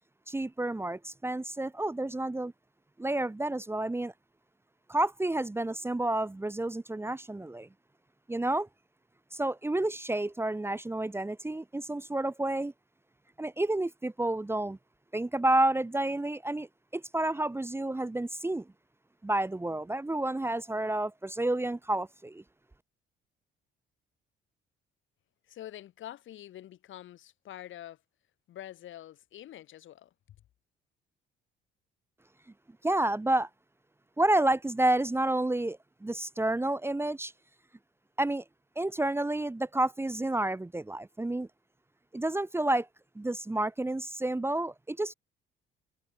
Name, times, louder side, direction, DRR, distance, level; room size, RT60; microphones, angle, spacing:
voice 1, 0.3-2.5 3.0-4.1 4.9-7.7 8.3-8.7 9.3-12.7 13.4-14.8 15.1-16.7 16.9-18.7 19.2-22.4 32.8-33.5 34.2-37.3 38.2-38.4 38.8-41.5 42.1-42.9 43.1-45.1, right 1 dB, 10° right, 1.2 m, -30 dB
voice 2, 25.5-28.0 28.5-30.1, left 12 dB, 70° left, 4.0 m, -46 dB
cardioid pair, 90°, 21 cm